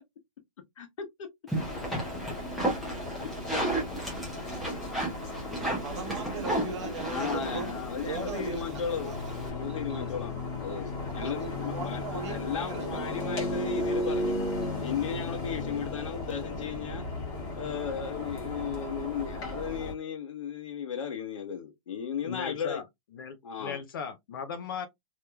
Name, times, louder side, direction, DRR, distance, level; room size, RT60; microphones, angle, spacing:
voice 1, 0.8-1.3 2.5-2.6 7.1-10.3 10.6-14.4 14.8-17.0 17.5-22.8 23.4-23.8, left 7 dB, 65° left, 1.0 m, -35 dB
sound 1, 1.5-19.9, left 2 dB, 20° left, 1.2 m, -35 dB
sound 2, 1.5-9.5, right 1 dB, ahead, 0.7 m, -34 dB
voice 2, 5.8-8.7 9.0-9.2 11.2-13.0, right 5 dB, 55° right, 0.9 m, -39 dB
voice 3, 22.2-22.9 23.1-24.9, left 7 dB, 40° left, 0.4 m, -37 dB
3.3 x 2.9 x 2.2 m
hypercardioid pair, 175°, 18 cm